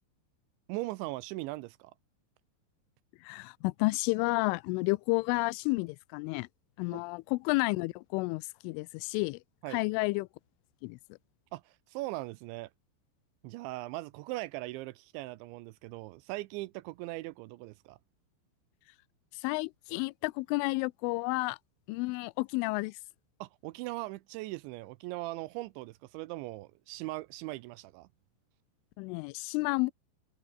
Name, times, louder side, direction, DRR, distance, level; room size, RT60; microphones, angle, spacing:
voice 1, 0.7-1.9 6.9-7.0 9.6-9.8 11.5-12.7 13.4-18.0 23.4-28.1, right 19 dB, 85° right, 2.8 m, -39 dB
voice 2, 3.2-6.5 6.8-9.4 9.7-10.3 10.8-11.0 19.4-21.6 21.9-23.0 29.0-29.9, left 25 dB, 85° left, 3.0 m, -31 dB
omnidirectional pair, 5.7 m